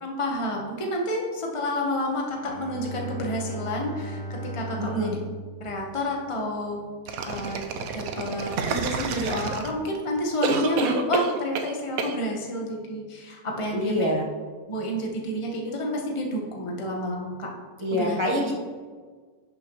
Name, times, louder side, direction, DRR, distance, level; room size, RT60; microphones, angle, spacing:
voice 1, 0.0-5.2 5.6-6.8 7.2-7.6 7.9-14.1 14.7-17.5 17.9-18.2, equal, 25° left, 0 dB, 1.1 m, -29 dB
Bowed string instrument, 2.4-6.9, right 1 dB, 75° left, 1.6 m, -37 dB
voice 2, 4.8-5.2 13.7-14.2 17.8-18.6, left 1 dB, 20° right, -1 dB, 1.3 m, -26 dB
sound 1, 7.1-10.0 10.4-11.7 12.0-12.1, right 5 dB, 80° right, 1.1 m, -28 dB
11.5 x 6.1 x 3.1 m, 1.5 s
omnidirectional pair, 1.5 m